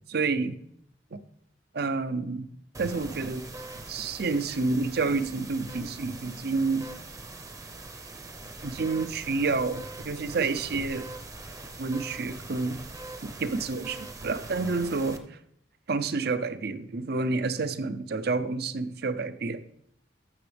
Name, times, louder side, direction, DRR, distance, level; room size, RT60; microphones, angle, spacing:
voice 1, 0.1-0.6 1.1-1.2 1.7-2.5 2.8-3.5 3.9-6.9 8.6-11.1 11.8-12.8 13.2-15.4 15.9-19.6, right 3 dB, 60° right, 12 dB, 0.6 m, -29 dB
sound 1, 2.7-15.2, right 2 dB, 20° right, 0.7 m, -42 dB
13.0 x 6.9 x 3.4 m, 0.72 s
head